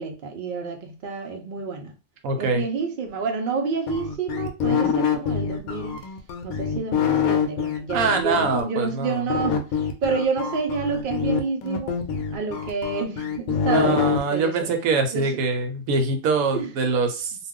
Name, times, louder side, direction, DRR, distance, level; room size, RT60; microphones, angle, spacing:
voice 1, 0.0-1.9 2.4-6.0 6.4-9.6 10.0-12.0 12.3-14.7 15.1-15.3 16.5-16.7, right 5 dB, 55° right, 0.6 m, -29 dB
voice 2, 2.2-2.6 4.6-5.0 7.9-9.2 13.6-17.3, right 3 dB, 80° right, 1.1 m, -24 dB
sound 1, 3.9-8.6 9.3-14.2, left 7 dB, 75° left, 1.0 m, -25 dB
2.4 x 2.4 x 3.5 m
omnidirectional pair, 1.5 m